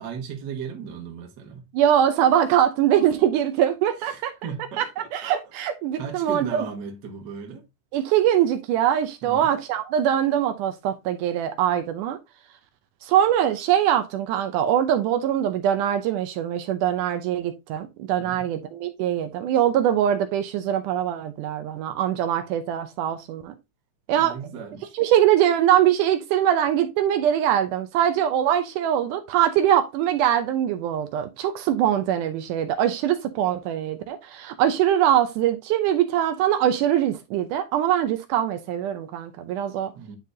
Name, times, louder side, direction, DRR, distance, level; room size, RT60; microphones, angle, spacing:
voice 1, 0.0-1.7 4.0-5.3 5.9-7.6 9.2-9.5 18.2-18.5 24.1-25.0 39.9-40.2, right 6 dB, 50° right, 1.4 m, -36 dB
voice 2, 1.7-4.3 4.8-4.9 5.1-6.7 7.9-12.2 13.0-23.5 24.1-24.4 24.9-39.9, right 10 dB, 80° right, 2.0 m, -22 dB
9.7 x 3.8 x 2.7 m
omnidirectional pair, 3.8 m